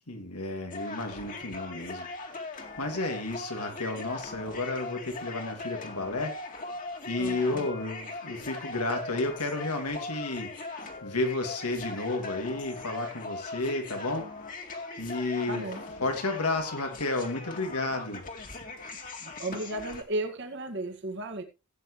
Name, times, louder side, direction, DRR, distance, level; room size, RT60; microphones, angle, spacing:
voice 1, 0.1-2.1 2.8-6.3 7.1-10.5 11.0-14.3 15.0-15.6 16.0-18.2, left 2 dB, 90° left, 4 dB, 2.8 m, -32 dB
sound 1, 0.7-20.0, left 3 dB, 35° left, 2.2 m, -40 dB
voice 2, 7.2-7.7 15.5-15.8 19.2-21.4, right 2 dB, 50° right, 5 dB, 1.9 m, -34 dB
17.0 x 8.8 x 3.2 m, 0.28 s
head